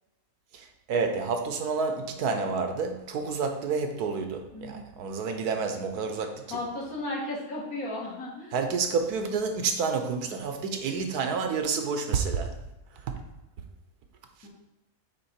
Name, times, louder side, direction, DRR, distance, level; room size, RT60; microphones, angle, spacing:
voice 1, 0.5-6.6 8.5-12.5 12.9-13.1 14.4-14.5, right 5 dB, 75° right, 6 dB, 1.3 m, -29 dB
voice 2, 4.5-4.9 6.5-8.5 14.4-14.5, left 2 dB, 60° left, -4 dB, 2.3 m, -34 dB
8.6 x 3.9 x 4.3 m, 0.97 s
omnidirectional pair, 1.7 m